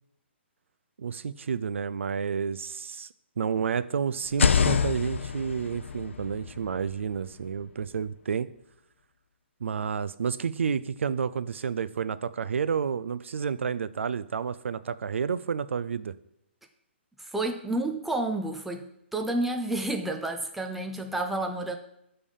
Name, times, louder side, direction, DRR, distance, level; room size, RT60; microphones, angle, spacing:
voice 1, 1.0-3.1 3.4-8.5 9.6-16.1, right 6 dB, 85° right, 15 dB, 0.4 m, -30 dB
sound 1, 4.2-8.1, left 6 dB, 80° left, 0.4 m, -28 dB
voice 2, 17.2-21.8, right 2 dB, ahead, 3 dB, 0.4 m, -30 dB
7.0 x 3.3 x 5.4 m, 0.80 s
hypercardioid pair, 150°, 7 cm